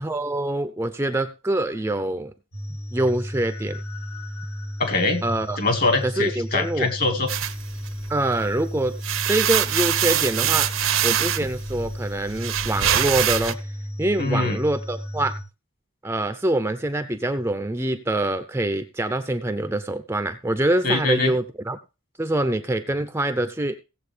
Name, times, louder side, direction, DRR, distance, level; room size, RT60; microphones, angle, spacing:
voice 1, 0.0-2.3 2.9-3.8 5.2-5.6 6.0-6.9 8.1-9.0 9.3-10.7 11.0-13.6 14.0-15.4 16.0-21.8 22.2-23.8, right 1 dB, 10° right, 9 dB, 0.6 m, -25 dB
sound 1, 2.5-15.4, equal, 80° left, 2.9 m, -34 dB
voice 2, 4.8-5.2 5.6-7.3 14.2-14.6 20.8-21.3, left 3 dB, 45° left, 8 dB, 2.0 m, -23 dB
sound 2, 7.3-8.5 8.9-13.5, right 10 dB, 70° right, 0.9 m, -24 dB
17.5 x 7.5 x 3.3 m, 0.30 s
head